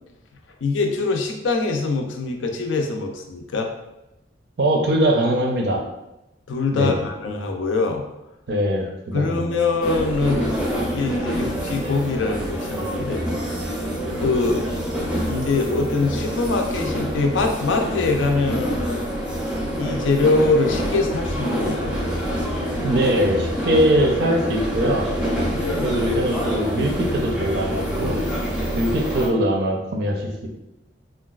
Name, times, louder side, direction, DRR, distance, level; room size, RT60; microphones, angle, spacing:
voice 1, 0.6-3.7 6.5-8.0 9.1-13.2 14.2-14.7 15.3-19.0 19.8-22.0 25.5-25.9, left 3 dB, 80° left, 3 dB, 0.4 m, -23 dB
voice 2, 4.6-5.8 6.7-7.0 8.5-9.7 22.8-25.1 25.8-28.2 28.7-30.5, right 1 dB, 60° right, 2 dB, 0.5 m, -22 dB
sound 1, 9.8-29.3, equal, 5° right, 0.5 m, -26 dB
3.8 x 2.3 x 2.3 m, 0.92 s
head